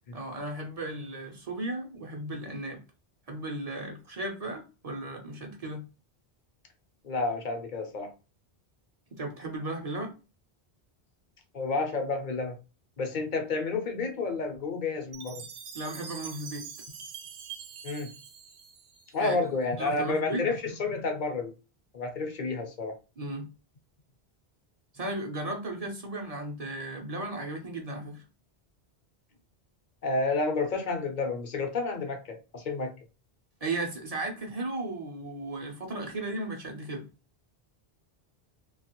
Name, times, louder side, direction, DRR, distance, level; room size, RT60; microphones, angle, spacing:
voice 1, 0.1-2.8 3.3-5.8 9.2-10.1 15.7-16.7 19.2-19.4 19.8-20.4 23.2-23.5 24.9-28.2 33.6-37.1, right 2 dB, 45° right, 0.6 m, -35 dB
voice 2, 7.0-8.1 11.5-12.6 13.0-15.4 17.8-18.1 19.1-21.5 21.9-22.9 30.0-32.9, left 3 dB, 55° left, 0.8 m, -30 dB
Chime, 15.1-19.4, right 6 dB, 90° right, 0.8 m, -44 dB
2.8 x 2.3 x 2.9 m
omnidirectional pair, 1.0 m